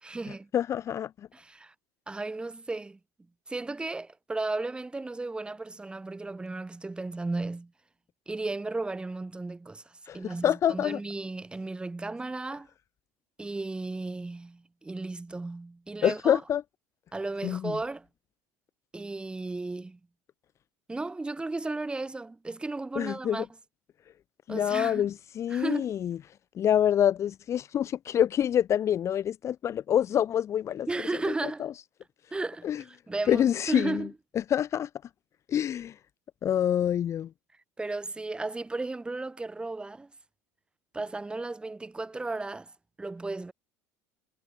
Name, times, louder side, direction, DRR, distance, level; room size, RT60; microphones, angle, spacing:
voice 1, 0.0-0.5 1.3-1.7 2.1-3.0 3.5-7.7 8.3-12.7 13.4-16.4 17.1-18.1 18.9-20.0 20.9-23.5 24.5-25.1 25.5-25.9 30.9-31.6 32.3-34.1 37.8-40.1 40.9-42.7 43.0-43.5, right 3 dB, 15° right, 3.6 m, -35 dB
voice 2, 0.5-1.3 10.1-11.0 16.0-16.6 17.4-17.8 22.9-23.5 24.5-26.2 26.5-30.9 31.4-31.7 32.6-32.8 33.3-34.1 34.3-34.9 35.5-36.0 36.4-37.3, left 10 dB, 40° left, 0.8 m, -26 dB
supercardioid pair, 100°, 7 cm